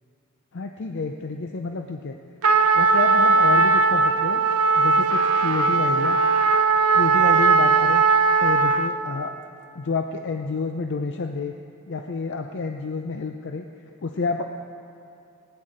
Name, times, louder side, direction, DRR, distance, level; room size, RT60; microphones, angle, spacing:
voice 1, 0.5-2.2 2.7-4.4 4.7-6.2 6.9-8.0 8.4-9.3 9.7-11.5 11.9-13.7 14.0-14.4, left 4 dB, 55° left, 5 dB, 0.6 m, -29 dB
Trumpet, 2.4-9.0, right 4 dB, 75° right, 0.7 m, -18 dB
19.5 x 9.6 x 5.0 m, 2.7 s
head